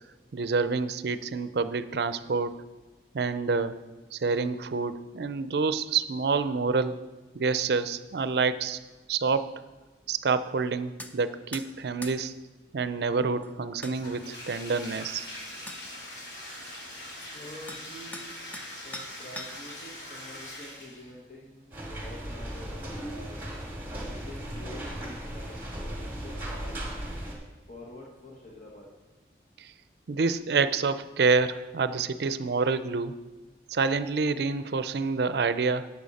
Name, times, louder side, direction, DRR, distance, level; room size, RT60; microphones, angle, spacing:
voice 1, 0.3-2.6 3.1-3.8 4.1-8.8 9.1-9.6 10.1-12.3 12.7-15.3 29.6-29.7 30.1-33.2 33.7-35.9, right 4 dB, 65° right, 13 dB, 0.5 m, -27 dB
sound 1, 11.0-11.1 11.5-11.7 12.0-12.2 13.4-13.5 13.8-14.0 15.2-15.3 15.7-15.8 17.2-17.3 17.7-17.8 18.1-18.7 18.9-19.7, left 1 dB, 10° left, 0.5 m, -41 dB
Bathtub (filling or washing), 13.9-21.2, left 1 dB, 85° left, 2.7 m, -42 dB
voice 2, 17.3-18.3 18.8-23.4 23.9-26.7 27.7-28.9, left 1 dB, 40° left, -4 dB, 1.2 m, -47 dB
sound 2, 21.7-27.3, right 1 dB, 10° right, 1.9 m, -37 dB
11.5 x 8.4 x 4.2 m, 1.2 s
head